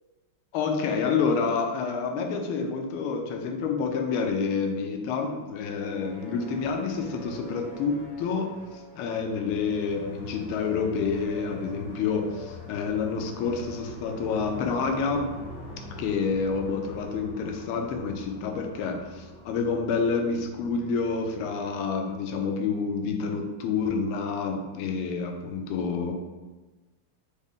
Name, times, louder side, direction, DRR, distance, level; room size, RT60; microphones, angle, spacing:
voice 1, 0.5-8.5 8.9-15.3 16.0-26.1, left 5 dB, 80° left, 3 dB, 1.4 m, -28 dB
sound 1, 5.5-22.3, left 1 dB, 90° right, 2.4 m, -44 dB
5.1 x 2.1 x 3.5 m, 1.2 s
omnidirectional pair, 2.4 m